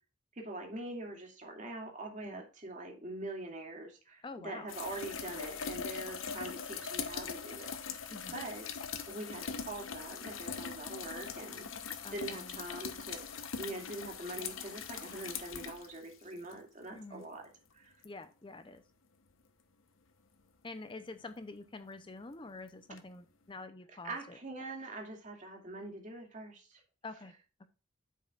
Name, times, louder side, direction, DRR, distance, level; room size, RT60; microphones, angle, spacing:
voice 1, 0.4-8.6 9.1-13.2 13.6-17.4 17.7-17.9 24.0-26.8, right 2 dB, 40° right, 1 dB, 2.3 m, -44 dB
voice 2, 4.2-4.7 8.1-8.4 12.0-12.6 16.9-17.2 18.0-18.8 20.6-24.4 27.0-27.3, left 3 dB, 25° left, 10 dB, 0.6 m, -47 dB
sound 1, 4.7-16.5 18.0-18.1 23.0-23.1, left 6 dB, 90° left, 1.0 m, -41 dB
9.3 x 7.4 x 2.4 m, 0.34 s
head